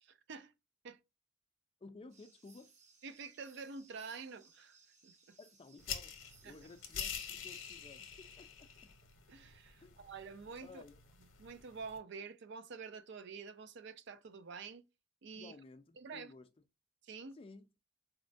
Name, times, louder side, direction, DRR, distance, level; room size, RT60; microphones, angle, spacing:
voice 1, 0.0-0.5 0.8-1.0 3.0-4.8 5.0-5.4 6.4-6.5 9.3-10.8 11.2-14.8 15.2-15.5 16.0-16.3 17.0-17.4, right 5 dB, 60° right, 0.5 m, -48 dB
voice 2, 1.8-2.7 5.4-6.1 6.4-8.9 9.8-9.9 10.6-11.0 15.3-16.5 17.3-17.7, left 3 dB, 30° left, 0.4 m, -55 dB
sound 1, 2.1-7.2, right 5 dB, 35° right, 1.1 m, -65 dB
sound 2, 5.8-12.0, left 7 dB, 70° left, 0.7 m, -47 dB
4.2 x 2.1 x 2.5 m
head